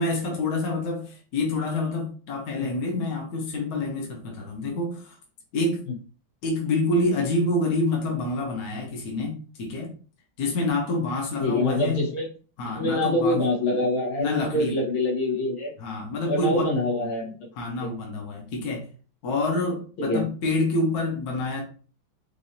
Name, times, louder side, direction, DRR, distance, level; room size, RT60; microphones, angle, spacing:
voice 1, 0.0-5.2 5.5-5.8 6.4-9.9 10.4-12.1 12.6-13.4 14.2-14.8 15.8-16.7 17.5-18.9 19.2-21.6, left 2 dB, 55° left, -1 dB, 1.4 m, -27 dB
voice 2, 11.4-12.3 12.6-15.7 16.2-17.5 17.8-17.9 20.0-20.3, left 1 dB, 80° left, -3 dB, 2.0 m, -25 dB
4.9 x 2.7 x 2.7 m, 0.39 s
omnidirectional pair, 2.2 m